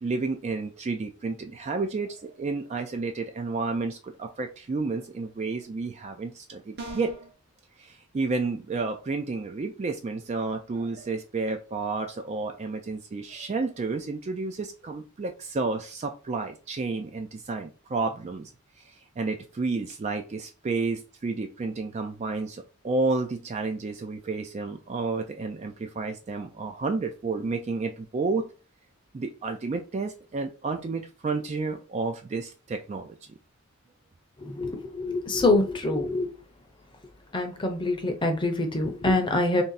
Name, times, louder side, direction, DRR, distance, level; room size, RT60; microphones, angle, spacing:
voice 1, 0.0-7.3 7.8-18.5 18.8-28.5 29.1-33.2, right 3 dB, 30° right, 5 dB, 0.3 m, -31 dB
sound 1, 6.8-7.3, right 2 dB, 50° right, 0.9 m, -38 dB
voice 2, 34.4-36.3 37.3-39.6, left 2 dB, 20° left, 5 dB, 0.6 m, -25 dB
3.3 x 2.7 x 3.9 m, 0.34 s
head